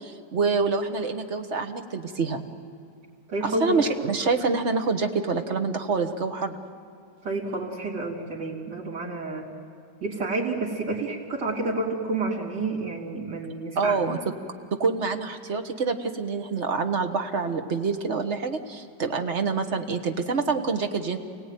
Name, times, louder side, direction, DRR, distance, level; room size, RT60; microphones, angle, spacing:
voice 1, 0.0-2.4 3.4-6.6 13.7-14.2 14.7-21.2, right 4 dB, 45° right, 5 dB, 1.5 m, -26 dB
voice 2, 3.3-3.8 7.2-9.5 10.0-14.0, right 2 dB, 80° right, -5 dB, 3.9 m, -29 dB
28.0 x 18.0 x 9.2 m, 2.4 s
omnidirectional pair, 1.9 m